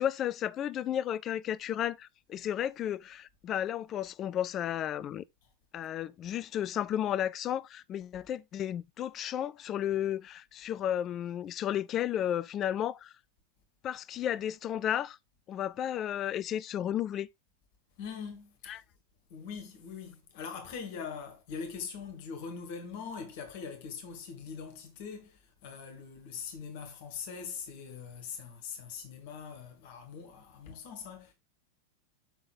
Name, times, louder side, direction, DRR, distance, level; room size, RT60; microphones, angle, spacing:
voice 1, 0.0-5.2 5.7-13.1 13.8-15.2 15.5-17.3 18.7-18.8, left 10 dB, 30° left, 0.4 m, -33 dB
voice 2, 18.0-18.8 19.3-31.3, left 6 dB, 50° left, 2.0 m, -42 dB
6.8 x 5.8 x 3.5 m
figure-of-eight pair, 90°, 0 cm